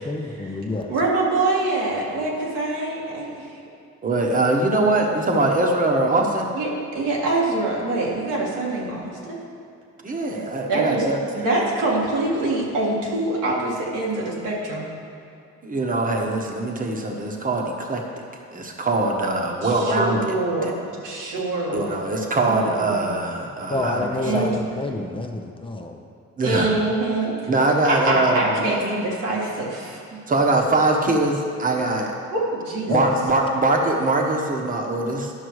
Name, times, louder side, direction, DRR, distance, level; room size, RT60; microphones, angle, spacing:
voice 1, 0.0-0.9 23.7-26.0 32.9-33.1, left 2 dB, 15° left, 3 dB, 0.7 m, -28 dB
voice 2, 0.9-3.6 6.5-9.4 10.7-11.1 11.3-14.9 19.6-20.7 21.0-21.9 22.5-22.9 24.2-24.6 26.4-27.4 27.8-30.2 32.3-33.1, right 2 dB, 90° right, -4 dB, 2.0 m, -25 dB
voice 3, 4.0-6.5 10.0-11.2 15.6-18.0 18.5-20.4 20.6-20.7 21.7-24.1 24.3-24.4 26.4-26.7 27.5-28.8 30.3-32.1 32.9-35.3, right 2 dB, 25° right, 1 dB, 1.2 m, -22 dB
11.0 x 5.9 x 4.8 m, 2.5 s
cardioid pair, 90°, 30 cm